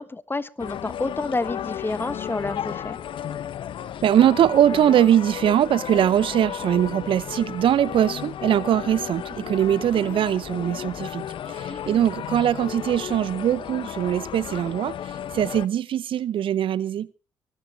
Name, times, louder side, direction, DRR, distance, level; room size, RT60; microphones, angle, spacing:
voice 1, 0.0-3.0 11.7-12.1, left 3 dB, 20° left, 1.4 m, -30 dB
sound 1, 0.6-15.7, left 10 dB, 60° left, 0.8 m, -34 dB
voice 2, 4.0-17.1, right 10 dB, 60° right, 0.6 m, -22 dB
24.0 x 14.0 x 3.1 m
hypercardioid pair, 50°, 10 cm